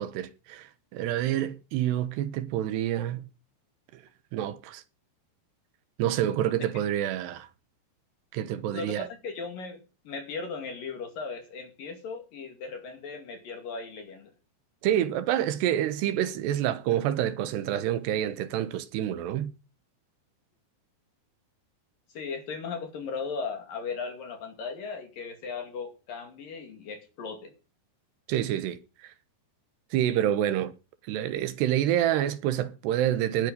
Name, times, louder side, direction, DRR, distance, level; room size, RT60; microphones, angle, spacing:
voice 1, 0.0-3.2 4.3-4.8 6.0-7.5 8.3-9.1 14.8-19.5 28.3-29.1 29.9-30.7 31.1-33.5, right 11 dB, 90° right, 3.3 m, -27 dB
voice 2, 8.7-9.8 10.1-14.3 22.1-27.5, left 5 dB, 60° left, 3.9 m, -37 dB
18.5 x 12.0 x 5.4 m
omnidirectional pair, 4.7 m